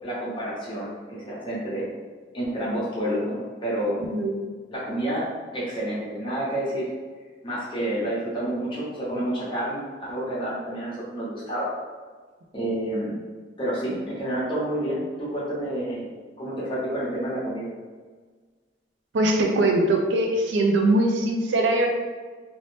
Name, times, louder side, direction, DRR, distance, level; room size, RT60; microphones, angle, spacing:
voice 1, 0.0-1.9 2.3-4.0 4.7-5.2 5.5-6.9 7.4-11.7 12.5-13.2 13.6-16.1 16.4-17.7, right 1 dB, 25° left, -8 dB, 0.9 m, -29 dB
voice 2, 19.1-21.9, right 2 dB, 80° right, 2 dB, 0.4 m, -21 dB
2.6 x 2.0 x 3.2 m, 1.5 s
head